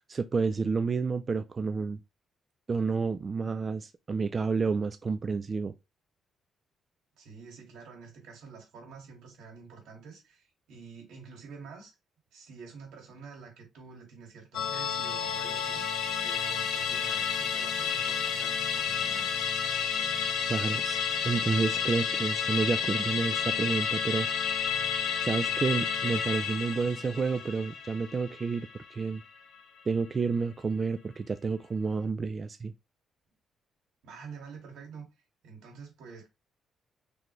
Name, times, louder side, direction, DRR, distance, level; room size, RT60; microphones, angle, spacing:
voice 1, 0.1-2.0 2.7-5.7 20.4-24.3 25.2-29.2 29.9-32.7, right 4 dB, 35° right, 0.3 m, -30 dB
voice 2, 7.2-11.9 12.3-15.8 16.2-19.3 34.0-35.1 35.4-36.3, right 5 dB, 85° right, 2.2 m, -48 dB
Musical instrument, 14.5-29.2 29.5-29.6, left 7 dB, 75° left, 1.1 m, -31 dB
3.8 x 3.4 x 3.1 m
cardioid pair, 90°, 0 cm